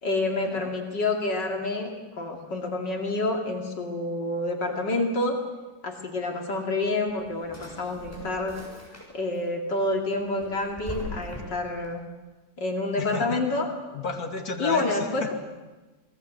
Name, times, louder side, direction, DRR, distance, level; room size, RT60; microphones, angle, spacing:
voice 1, 0.0-5.4 5.8-8.6 9.1-12.0 12.6-13.7 14.6-15.3, left 2 dB, 65° left, 2 dB, 3.2 m, -28 dB
Drawer open or close, 6.8-9.4 9.8-11.9, left 1 dB, 5° left, 7.2 m, -41 dB
voice 2, 13.0-13.6 13.9-15.3, left 3 dB, 50° left, 4 dB, 2.9 m, -33 dB
26.5 x 20.0 x 8.0 m, 1.2 s
omnidirectional pair, 2.0 m